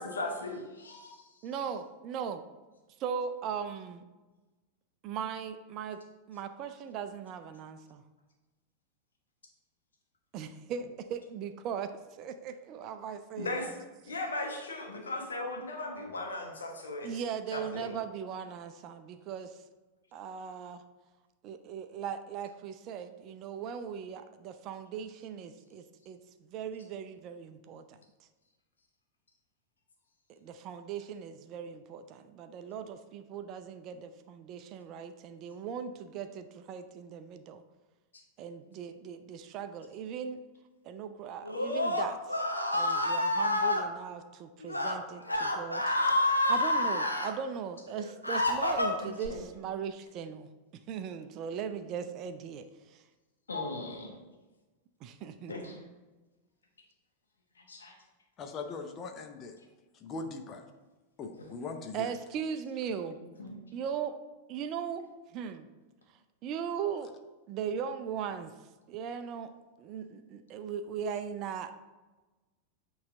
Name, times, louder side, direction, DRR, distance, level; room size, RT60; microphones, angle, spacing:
voice 1, 0.0-1.2 13.4-17.1 17.5-17.9 49.0-49.4 53.5-54.1 55.5-55.8 57.7-57.9 63.4-63.6, left 2 dB, 70° left, 0 dB, 1.2 m, -37 dB
voice 2, 1.4-2.4 3.0-4.0 5.0-6.0 6.3-8.0 10.3-11.9 12.2-13.7 17.0-19.6 20.1-20.8 21.4-28.0 30.4-37.6 38.4-40.4 40.8-42.4 42.7-46.0 46.5-50.5 50.9-53.0 55.0-55.8 61.9-63.2 63.7-64.1 64.5-65.1 65.3-65.7 66.4-67.1 67.5-68.5 68.9-69.5 69.8-71.7, right 7 dB, 35° right, 9 dB, 0.4 m, -38 dB
Screaming, 41.4-43.8 44.6-44.9 45.3-47.3 47.9-49.3, left 1 dB, 85° left, 0.7 m, -28 dB
voice 3, 58.4-59.6 60.0-60.6 61.2-62.1, left 4 dB, 30° left, 5 dB, 0.6 m, -40 dB
8.6 x 3.1 x 3.8 m, 1.2 s
figure-of-eight pair, 90°, 0 cm